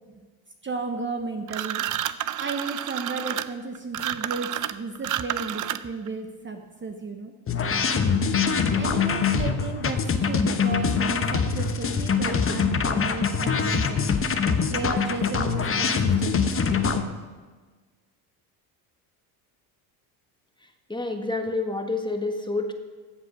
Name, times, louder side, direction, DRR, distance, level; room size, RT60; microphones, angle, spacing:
voice 1, 0.6-1.9 2.4-7.3 8.3-14.1 14.7-16.9, right 3 dB, 25° right, 5 dB, 1.0 m, -34 dB
sound 1, 1.5-6.1, right 12 dB, 45° right, 0.6 m, -30 dB
sound 2, 7.5-17.0, left 5 dB, 30° left, 1.0 m, -24 dB
voice 2, 20.6-22.7, left 3 dB, 10° left, 5 dB, 1.5 m, -29 dB
14.5 x 7.7 x 5.3 m, 1.4 s
supercardioid pair, 80°, 46 cm